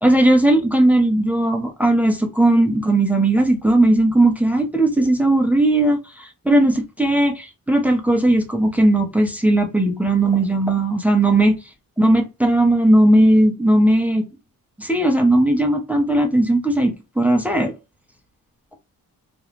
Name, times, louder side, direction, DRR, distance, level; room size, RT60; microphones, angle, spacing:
voice 1, 0.0-11.6 12.0-14.2 14.8-17.7, right 1 dB, 5° right, 0.6 m, -17 dB
2.5 x 2.2 x 3.0 m
cardioid pair, 95°, 35 cm